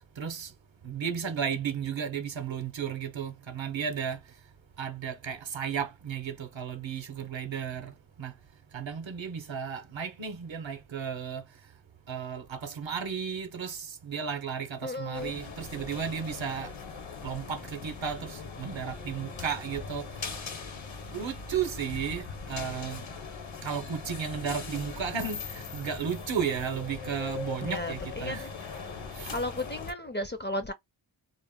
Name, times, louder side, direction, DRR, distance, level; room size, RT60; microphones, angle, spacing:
voice 1, 0.2-0.5 0.8-4.2 4.8-7.9 8.2-8.3 8.7-11.4 12.1-16.7 17.2-20.1 21.1-23.1 23.6-28.5 29.1-29.3, right 7 dB, 65° right, 0.7 m, -34 dB
voice 2, 14.8-15.3 27.6-28.5 29.3-30.7, left 1 dB, 25° left, 0.4 m, -34 dB
sound 1, 15.1-29.9, left 5 dB, 65° left, 0.8 m, -40 dB
2.0 x 2.0 x 3.4 m
wide cardioid pair, 65°, 49 cm